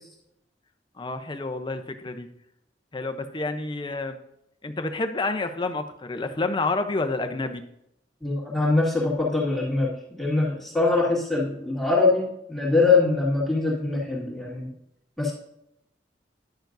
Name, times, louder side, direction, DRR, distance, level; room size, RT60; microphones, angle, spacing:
voice 1, 1.0-2.3 2.9-4.2 4.6-7.6, left 3 dB, 25° left, 8 dB, 0.6 m, -29 dB
voice 2, 8.2-14.7 15.2-15.3, left 3 dB, ahead, -7 dB, 2.0 m, -23 dB
10.5 x 6.9 x 2.6 m, 0.79 s
head